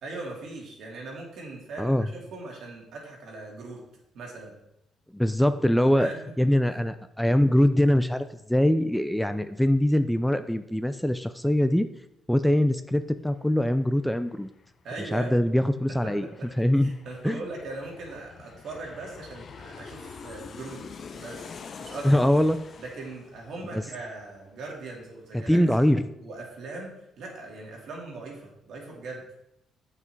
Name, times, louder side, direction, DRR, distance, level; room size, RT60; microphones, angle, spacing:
voice 1, 0.0-3.8 4.1-4.5 5.9-6.5 14.8-15.3 15.9-20.8 21.2-21.5 21.8-22.1 22.8-25.6 26.2-29.2, right 2 dB, 70° right, -2 dB, 2.6 m, -40 dB
voice 2, 5.1-6.1 6.4-11.9 12.3-14.5 15.1-16.3 16.6-16.9 17.2-17.4 22.0-22.6 23.7-23.8 25.3-26.0, left 1 dB, 5° left, 10 dB, 0.4 m, -23 dB
Aircraft, 13.5-24.8 25.1-25.2, left 5 dB, 50° left, 0.7 m, -46 dB
8.3 x 5.7 x 4.6 m, 0.81 s
cardioid pair, 90°, 0 cm